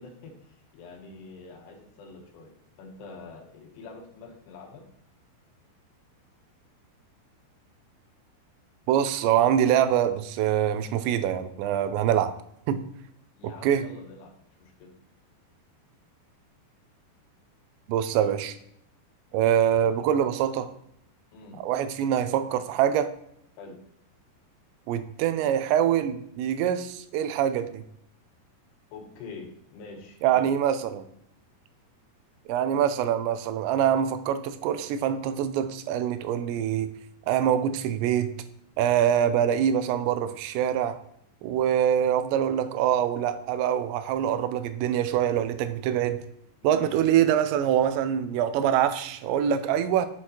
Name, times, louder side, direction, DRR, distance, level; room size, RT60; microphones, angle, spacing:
voice 1, 0.0-4.9 13.4-14.9 21.3-21.6 23.6-23.8 28.9-30.5 46.6-47.1, left 3 dB, 75° left, 2 dB, 3.0 m, -45 dB
voice 2, 8.9-12.3 12.7-12.8 13.4-13.8 17.9-18.6 19.3-20.7 21.6-23.1 24.9-27.8 30.2-31.1 32.5-36.9 37.3-38.3 38.8-41.0 41.4-46.2 46.6-50.1, right 9 dB, 90° right, 11 dB, 2.8 m, -24 dB
7.6 x 6.2 x 2.9 m, 0.72 s
omnidirectional pair, 5.0 m